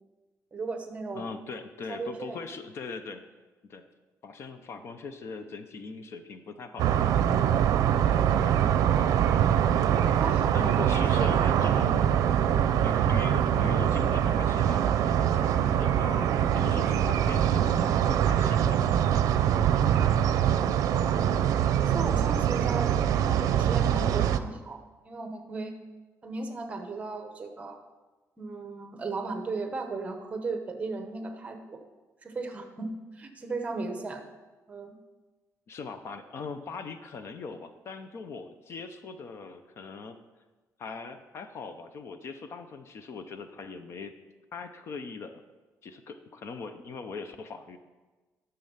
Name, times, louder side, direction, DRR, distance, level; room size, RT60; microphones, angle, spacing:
voice 1, 0.5-1.3 1.9-2.4 10.2-10.9 11.2-11.5 20.9-21.2 21.8-22.9 23.2-25.7 26.2-27.8 28.4-31.8 32.2-34.2 34.7-34.9, right 3 dB, 20° right, 6 dB, 1.0 m, -36 dB
voice 2, 1.1-3.3 3.6-3.9 4.2-7.0 9.6-10.0 10.5-12.3 12.7-19.0 35.7-40.2 40.8-44.1 44.5-45.4 45.8-47.8, left 4 dB, 45° left, 9 dB, 0.6 m, -40 dB
sound 1, 6.8-24.4, right 9 dB, 75° right, 0.5 m, -24 dB
10.5 x 6.9 x 5.6 m, 1.2 s
cardioid pair, 160°, 6 cm